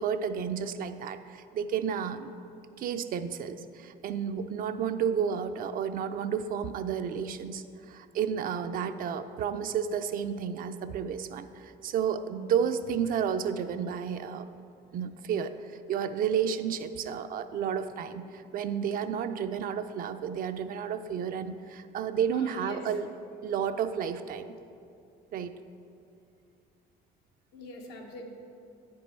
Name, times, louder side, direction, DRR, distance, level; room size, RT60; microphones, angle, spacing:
voice 1, 0.0-2.3 2.8-14.5 14.9-23.1 23.4-24.5 25.3-25.5, right 7 dB, 60° right, 9 dB, 0.4 m, -31 dB
voice 2, 22.3-22.9 27.5-28.2, left 2 dB, 90° left, 1 dB, 1.1 m, -43 dB
9.3 x 5.3 x 4.3 m, 2.5 s
cardioid pair, 110°, 17 cm